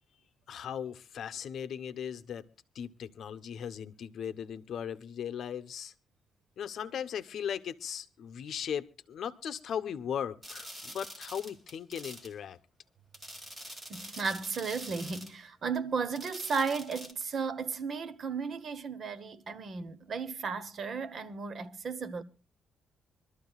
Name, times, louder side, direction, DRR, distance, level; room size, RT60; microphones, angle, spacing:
voice 1, 0.5-2.5 2.7-5.9 6.6-12.6, left 8 dB, 55° left, 0.9 m, -38 dB
sound 1, 10.4-12.3 13.1-15.3 16.2-17.1, equal, 15° right, 2.5 m, -45 dB
voice 2, 13.9-22.2, right 5 dB, 40° right, 0.9 m, -34 dB
25.0 x 13.0 x 2.3 m
cardioid pair, 145°, 0 cm